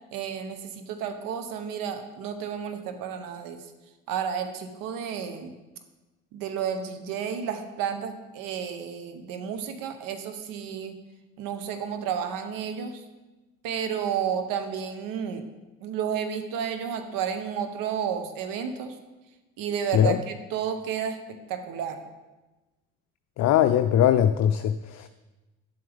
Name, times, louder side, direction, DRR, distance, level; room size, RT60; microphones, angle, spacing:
voice 1, 0.1-3.6 4.1-5.5 6.3-11.0 11.4-13.0 13.6-15.4 15.8-19.0 19.6-22.0, right 7 dB, 70° right, 8 dB, 1.0 m, -31 dB
voice 2, 23.4-25.1, left 10 dB, 55° left, 9 dB, 0.5 m, -21 dB
10.5 x 7.7 x 3.5 m, 1.1 s
hypercardioid pair, 60°, 34 cm